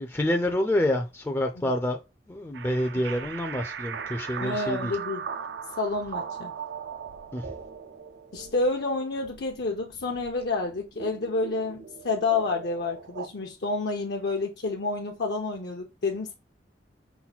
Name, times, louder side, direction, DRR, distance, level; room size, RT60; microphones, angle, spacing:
voice 1, 0.0-2.0 2.3-4.9 7.3-7.5, left 1 dB, 15° left, 0.4 m, -27 dB
sound 1, 2.5-13.3, right 6 dB, 70° right, 0.4 m, -39 dB
voice 2, 4.4-5.2 5.8-6.5 8.3-16.3, left 3 dB, 70° left, 0.7 m, -29 dB
5.7 x 2.2 x 4.1 m
head